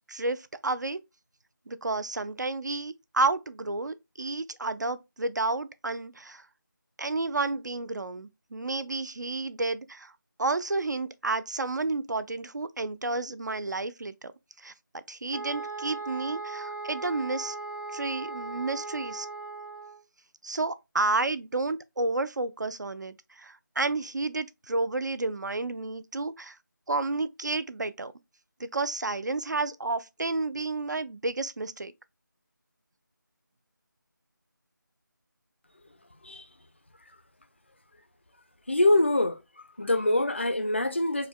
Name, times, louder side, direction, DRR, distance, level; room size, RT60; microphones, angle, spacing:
voice 1, 0.1-1.0 1.7-6.4 7.0-10.1 10.4-14.3 14.6-17.6 17.9-19.3 20.4-26.6 26.9-28.1 28.6-31.9, right 3 dB, 60° right, 0.4 m, -31 dB
sound 1, 15.3-20.0, right 3 dB, 75° right, 0.8 m, -38 dB
voice 2, 38.7-39.4 39.8-41.3, left 1 dB, 35° left, 0.3 m, -24 dB
4.8 x 2.1 x 2.2 m
figure-of-eight pair, 165°, 11 cm